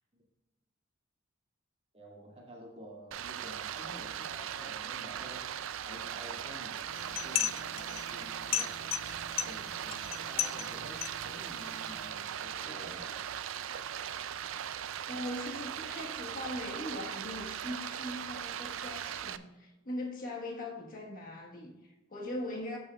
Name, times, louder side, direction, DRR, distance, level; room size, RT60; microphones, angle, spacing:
voice 1, 1.9-13.2, equal, 30° right, 2.2 m, -50 dB
Stream, 3.1-19.4, right 9 dB, 70° right, 0.4 m, -39 dB
sound 1, 6.9-12.1, left 12 dB, 70° left, 0.4 m, -37 dB
voice 2, 15.1-22.8, left 1 dB, 45° left, 1.4 m, -40 dB
13.5 x 6.3 x 2.3 m
head